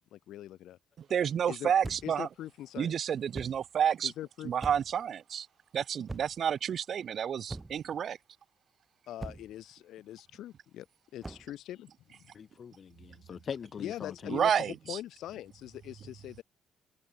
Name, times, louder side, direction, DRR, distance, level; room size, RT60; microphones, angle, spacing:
voice 1, 0.1-0.8 1.5-1.7 2.0-2.9 4.0-4.5 9.1-10.9 11.1-11.9 13.8-16.4, left 13 dB, 80° left, 0.7 m, -42 dB
voice 2, 1.0-2.3 2.8-4.1 4.4-5.5 5.7-8.2 14.3-15.0, right 8 dB, 60° right, 0.3 m, -30 dB
sound 1, 1.8-2.2 3.3-3.7 4.6-5.0 6.1-6.5 7.5-7.9 9.2-9.6 11.2-11.5, right 2 dB, 20° right, 3.2 m, -42 dB
voice 3, 12.3-14.4, left 7 dB, 50° left, 1.0 m, -42 dB
cardioid pair, 90°, 0 cm